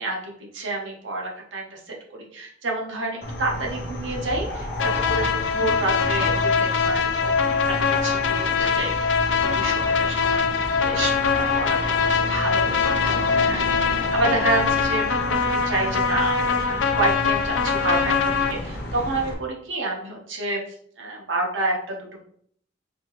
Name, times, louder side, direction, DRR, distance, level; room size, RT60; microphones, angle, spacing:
voice 1, 0.0-1.8 2.1-7.7 8.0-20.6 21.0-22.0, right 2 dB, 85° right, 0 dB, 1.0 m, -29 dB
sound 1, 3.2-19.3, equal, 55° left, 0.8 m, -32 dB
sound 2, 4.8-18.5, left 6 dB, 80° left, 0.5 m, -23 dB
4.4 x 2.7 x 2.9 m, 0.63 s
head